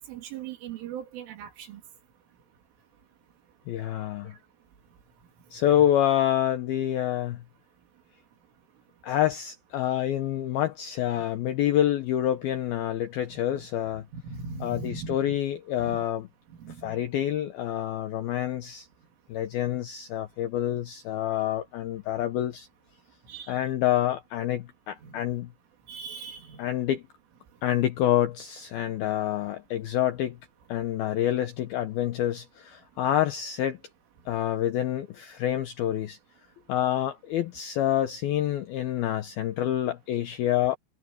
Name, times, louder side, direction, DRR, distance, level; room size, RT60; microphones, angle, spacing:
voice 1, 0.0-1.8 5.8-5.9 11.1-11.2 13.6-13.7 14.1-15.4 15.8-16.0 16.5-17.0 23.3-23.6 25.0-25.2 25.9-26.6, right 5 dB, 80° right, 5.7 m, -39 dB
voice 2, 3.7-4.4 5.5-7.4 9.0-14.1 14.6-16.2 16.8-18.9 19.3-22.7 23.5-25.5 26.6-27.0 27.6-30.4 30.7-33.8 34.3-36.2 36.7-40.8, left 11 dB, 75° left, 2.2 m, -27 dB
omnidirectional pair, 5.6 m